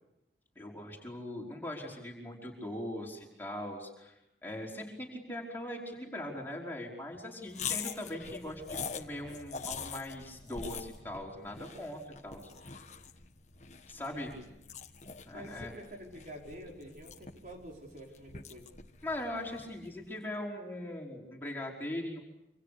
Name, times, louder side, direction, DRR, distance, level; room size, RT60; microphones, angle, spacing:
voice 1, 0.5-12.9 13.9-14.3 15.3-15.7 19.0-22.2, left 1 dB, 10° left, -2 dB, 5.1 m, -40 dB
sound 1, 7.5-20.0, left 6 dB, 40° left, 1.4 m, -44 dB
voice 2, 14.1-14.4 15.3-18.7, right 1 dB, 45° right, 0 dB, 4.9 m, -48 dB
28.0 x 26.5 x 6.8 m, 0.90 s
head